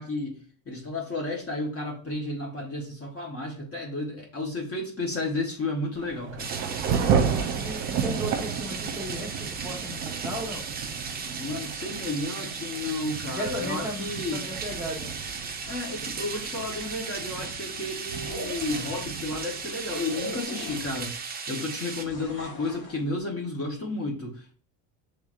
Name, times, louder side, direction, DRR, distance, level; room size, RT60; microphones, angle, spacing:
voice 1, 0.0-6.5 11.2-14.5 15.6-24.5, left 2 dB, 30° left, 0 dB, 1.0 m, -32 dB
Thunder / Rain, 6.0-20.4, right 7 dB, 50° right, 0.8 m, -33 dB
sound 1, 6.4-22.0, right 5 dB, 20° right, 0.5 m, -36 dB
voice 2, 7.0-10.6 13.3-15.1, equal, 5° right, -1 dB, 1.1 m, -36 dB
sound 2, 18.1-19.1 20.1-21.2 22.1-23.0, left 2 dB, 45° left, 1.4 m, -39 dB
5.7 x 3.3 x 2.5 m, 0.42 s
supercardioid pair, 115°, 49 cm